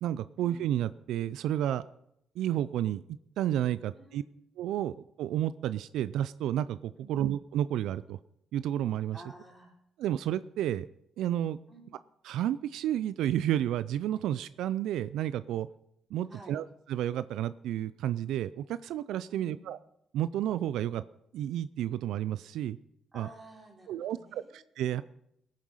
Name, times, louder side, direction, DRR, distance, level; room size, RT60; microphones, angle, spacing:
voice 1, 0.0-1.8 2.4-3.0 3.4-4.2 4.6-8.2 8.5-9.2 10.0-10.9 11.2-11.6 12.2-15.7 16.1-19.8 20.1-21.0 21.3-22.8 23.1-23.3 23.9-25.0, right 11 dB, 85° right, 15 dB, 0.4 m, -31 dB
voice 2, 3.9-4.3 7.0-7.1 9.1-9.8 11.7-11.8 16.3-16.6 19.3-19.6 23.1-24.6, right 2 dB, 25° right, 0 dB, 4.2 m, -51 dB
18.0 x 7.5 x 5.6 m, 0.76 s
cardioid pair, 90°, 0 cm